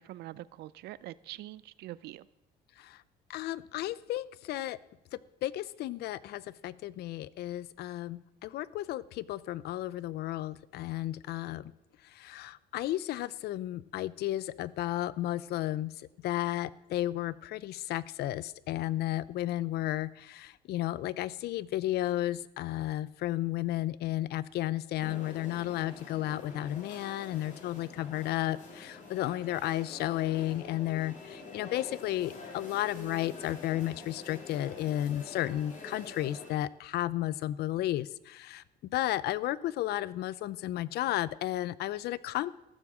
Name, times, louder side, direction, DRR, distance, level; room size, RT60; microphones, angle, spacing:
voice 1, 0.0-2.3, right 15 dB, 75° right, 19 dB, 0.6 m, -44 dB
voice 2, 3.3-4.8 5.4-11.7 12.1-38.6 38.9-42.5, left 14 dB, 70° left, 19 dB, 0.6 m, -33 dB
sound 1, 25.0-36.5, left 3 dB, 45° left, 3.5 m, -47 dB
14.5 x 7.1 x 7.4 m, 0.88 s
cardioid pair, 110°, 17 cm